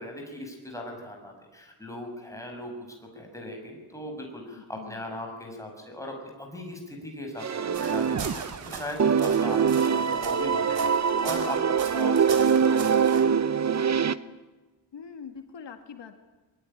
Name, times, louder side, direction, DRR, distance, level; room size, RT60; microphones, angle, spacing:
voice 1, 0.0-2.7 3.1-13.1, left 1 dB, 5° left, 2 dB, 6.2 m, -38 dB
voice 2, 4.6-5.0 14.9-16.2, left 6 dB, 80° left, 6 dB, 2.2 m, -43 dB
sound 1, 7.4-8.7 9.0-14.1, right 6 dB, 40° right, 0.8 m, -23 dB
sound 2, 7.7-13.2, right 5 dB, 85° right, 4.1 m, -40 dB
23.0 x 21.0 x 10.0 m, 1.2 s
wide cardioid pair, 160°, 43 cm